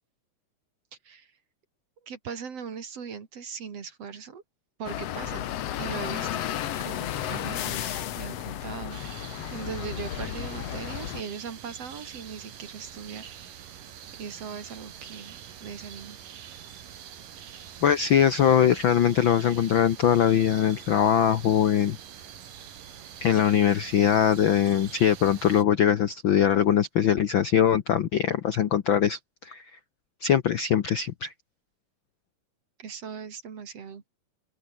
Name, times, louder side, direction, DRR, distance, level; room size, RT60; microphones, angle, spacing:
voice 1, 2.0-4.4 4.8-5.5 5.8-6.5 6.8-9.0 9.5-13.3 14.2-16.2 32.8-34.1, right 6 dB, 50° right, 3.5 m, -39 dB
sound 1, 4.8-11.2, left 11 dB, 60° left, 2.0 m, -33 dB
sound 2, 8.9-25.6, right 9 dB, 85° right, 4.0 m, -45 dB
voice 2, 17.8-22.0 23.2-29.6 30.2-31.3, left 9 dB, 85° left, 1.0 m, -22 dB
open air
omnidirectional pair, 3.7 m